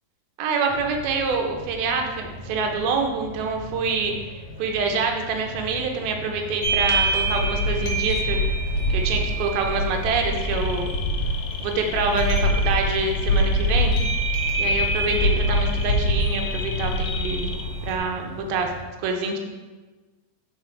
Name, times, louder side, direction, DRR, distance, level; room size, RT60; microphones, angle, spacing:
voice 1, 0.4-8.4 8.9-10.9 11.6-14.0 14.6-17.6 17.8-18.7 19.0-19.4, right 4 dB, 75° right, 3 dB, 2.4 m, -26 dB
sound 1, 0.7-18.9, left 1 dB, 15° right, 1.7 m, -40 dB
sound 2, 6.6-18.0, equal, 65° left, 1.8 m, -24 dB
sound 3, 10.2-18.0 18.3-18.7, left 6 dB, 85° left, 2.1 m, -38 dB
8.0 x 5.8 x 4.6 m, 1.3 s
omnidirectional pair, 5.1 m